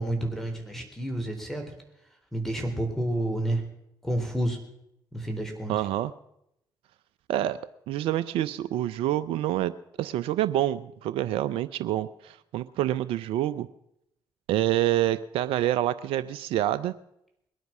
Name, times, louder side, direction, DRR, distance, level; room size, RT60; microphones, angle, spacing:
voice 1, 0.0-1.7 2.3-3.7 4.0-4.6 5.1-5.8, right 1 dB, 5° left, 4 dB, 4.2 m, -30 dB
voice 2, 5.7-6.1 7.3-7.6 7.9-9.7 10.0-13.7 14.5-16.9, right 13 dB, 70° right, 15 dB, 0.5 m, -27 dB
21.0 x 9.4 x 6.1 m, 0.79 s
hypercardioid pair, 50°, 10 cm